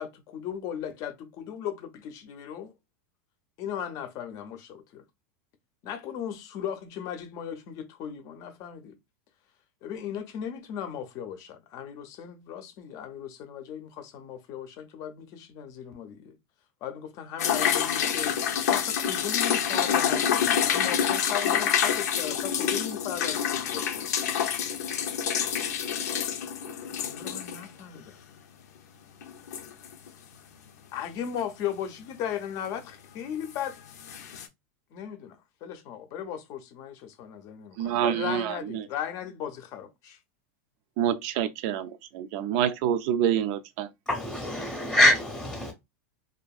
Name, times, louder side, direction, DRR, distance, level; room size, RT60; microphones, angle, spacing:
voice 1, 0.0-2.7 3.6-5.0 5.8-9.0 9.8-16.4 16.8-24.3 27.0-28.2 30.9-33.8 34.9-40.2, left 9 dB, 40° left, 0.6 m, -37 dB
sound 1, 17.4-27.7 28.0-28.1 29.2-30.1 33.5-33.6 34.0-34.5, left 8 dB, 85° left, 0.6 m, -27 dB
voice 2, 37.8-38.8 41.0-43.9, right 10 dB, 50° right, 0.4 m, -27 dB
voice 3, 44.1-45.7, left 1 dB, 10° left, 0.8 m, -24 dB
2.7 x 2.5 x 2.3 m
supercardioid pair, 145°, 9 cm